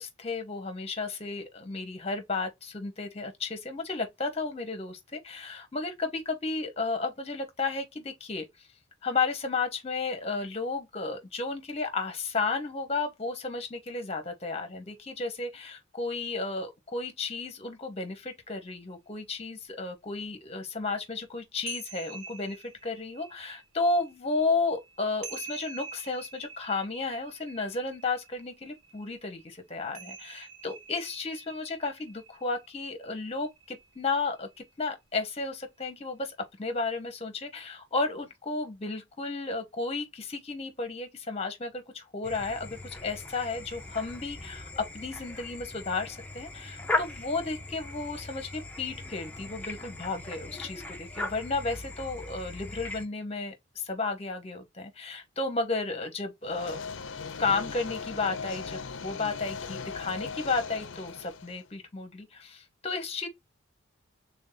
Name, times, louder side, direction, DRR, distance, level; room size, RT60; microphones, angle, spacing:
voice 1, 0.0-8.5 9.0-56.8 57.4-63.3, left 3 dB, 30° left, 0.9 m, -33 dB
sound 1, 19.9-20.0 21.2-34.7, right 5 dB, 85° right, 0.7 m, -47 dB
sound 2, 42.2-53.1, left 2 dB, 5° left, 0.5 m, -38 dB
sound 3, 56.4-61.6, left 5 dB, 60° left, 0.5 m, -39 dB
3.5 x 2.5 x 3.8 m
head